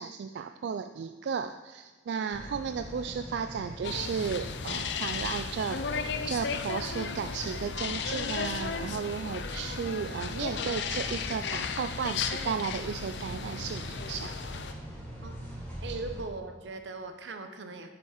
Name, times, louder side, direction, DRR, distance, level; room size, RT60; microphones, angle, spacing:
voice 1, 0.0-14.3 15.8-16.0, right 6 dB, 70° right, 8 dB, 0.3 m, -34 dB
sound 1, 2.3-16.2, equal, 10° left, 2.6 m, -43 dB
sound 2, 3.8-14.7, left 6 dB, 70° left, 0.5 m, -35 dB
voice 2, 15.8-17.9, right 3 dB, 90° right, 7 dB, 0.8 m, -39 dB
8.1 x 7.0 x 4.9 m, 1.2 s
head